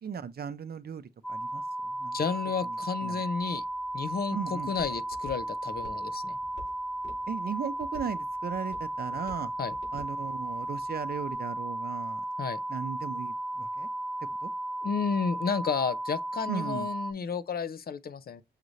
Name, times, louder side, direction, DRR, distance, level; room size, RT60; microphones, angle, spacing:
voice 1, 0.0-2.2 2.6-3.2 4.3-4.7 7.3-9.5 9.9-12.2 12.7-13.9 14.2-14.5 16.5-16.9, right 7 dB, 60° right, 0.5 m, -37 dB
sound 1, 1.2-17.1, right 1 dB, 5° left, 0.5 m, -35 dB
voice 2, 2.1-3.6 3.9-6.4 9.6-9.7 12.4-12.6 14.8-18.4, left 6 dB, 60° left, 0.6 m, -32 dB
Walk footsteps, 3.4-11.3, left 2 dB, 85° left, 3.5 m, -51 dB
6.6 x 2.5 x 3.1 m
wide cardioid pair, 90°, 18 cm